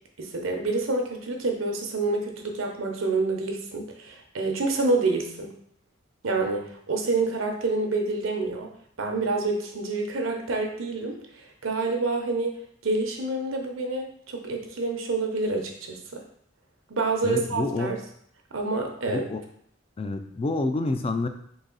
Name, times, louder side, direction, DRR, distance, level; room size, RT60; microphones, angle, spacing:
voice 1, 0.2-5.5 6.2-8.7 9.0-12.5 12.8-16.2 16.9-18.0 18.5-19.2, right 3 dB, 85° right, 2 dB, 0.8 m, -27 dB
voice 2, 17.2-18.0 19.1-19.4 20.0-21.3, left 2 dB, 30° left, 7 dB, 0.3 m, -28 dB
4.0 x 2.9 x 3.8 m, 0.65 s
head